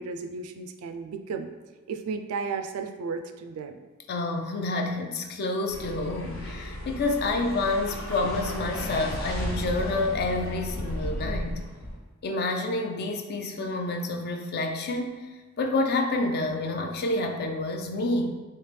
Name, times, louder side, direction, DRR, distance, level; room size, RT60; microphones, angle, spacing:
voice 1, 0.0-1.5 1.9-3.8, right 5 dB, 80° right, 7 dB, 0.3 m, -34 dB
voice 2, 4.1-11.6 12.2-15.3 15.6-18.3, left 2 dB, 45° left, 3 dB, 0.4 m, -28 dB
sound 1, 5.7-12.0, left 1 dB, 70° left, 0.9 m, -34 dB
3.2 x 2.8 x 3.2 m, 1.3 s
head